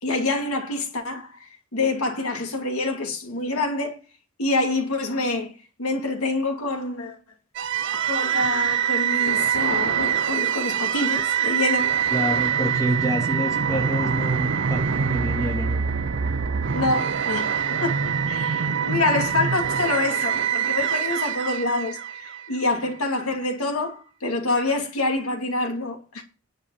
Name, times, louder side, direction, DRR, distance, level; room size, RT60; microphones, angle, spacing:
voice 1, 0.0-4.0 4.4-5.5 5.8-7.2 8.1-12.0 16.7-26.2, left 2 dB, 75° left, 2.5 m, -26 dB
sound 1, 7.5-22.7, right 7 dB, 55° right, 0.6 m, -24 dB
voice 2, 12.1-15.8, equal, 15° left, 2.9 m, -28 dB
10.5 x 5.4 x 7.1 m
head